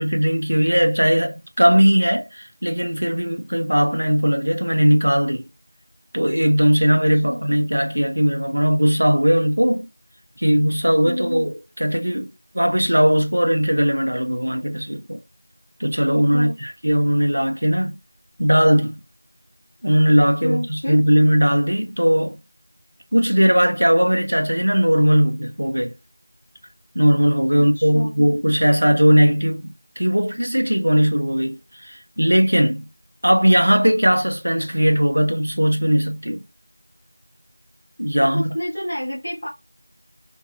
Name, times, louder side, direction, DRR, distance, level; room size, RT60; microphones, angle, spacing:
voice 1, 0.0-5.4 6.1-9.9 10.4-15.2 15.8-18.0 18.4-19.0 19.8-22.4 23.1-25.9 26.9-32.9 33.2-36.4 38.0-38.4, equal, 45° right, 0.6 m, -18 dB
voice 2, 11.0-11.5 16.3-16.6 20.4-21.0 27.6-28.1 38.2-39.5, equal, 5° left, 0.5 m, -28 dB
3.5 x 2.0 x 2.6 m
figure-of-eight pair, 180°, 0 cm